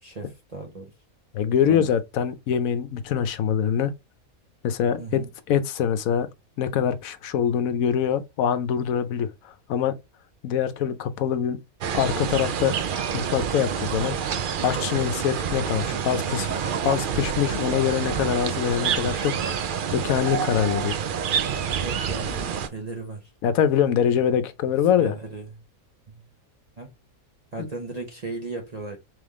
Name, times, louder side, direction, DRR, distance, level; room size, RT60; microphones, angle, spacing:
voice 1, 0.0-0.9 1.7-1.9 5.0-5.3 21.8-23.3 24.9-25.5 26.1-26.2 26.8-26.9 27.5-29.0, right 3 dB, 35° right, 0.7 m, -36 dB
voice 2, 1.3-3.9 4.6-6.3 6.6-10.0 10.4-11.6 11.9-12.8 13.1-14.2 14.6-16.5 16.8-19.3 19.9-21.0 23.4-25.1 27.6-27.7, left 8 dB, 75° left, 1.0 m, -24 dB
sound 1, 11.8-22.7, right 7 dB, 85° right, 0.4 m, -28 dB
3.4 x 3.3 x 3.5 m
omnidirectional pair, 1.5 m